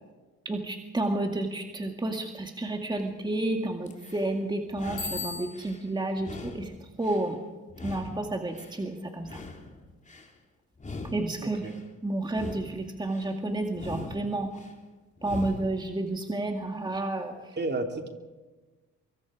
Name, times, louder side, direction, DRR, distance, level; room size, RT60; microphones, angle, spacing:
voice 1, 0.5-6.7 7.0-7.4 7.8-9.4 11.1-11.6 12.0-14.5 15.2-17.3, right 2 dB, 15° right, 3 dB, 2.0 m, -31 dB
sound 1, 3.9-4.3 4.7-5.8 6.2-7.3 7.7-8.8 9.2-10.3 10.7-11.8 12.2-13.3 13.7-14.7 15.2-15.8, left 3 dB, 25° left, 3.5 m, -42 dB
Bicycle bell, 5.0-5.9, left 3 dB, 75° left, 5.9 m, -36 dB
voice 2, 11.4-11.7 17.6-18.1, right 2 dB, 35° right, 4 dB, 2.8 m, -32 dB
25.0 x 23.0 x 5.0 m, 1.2 s
cardioid pair, 90°, 30 cm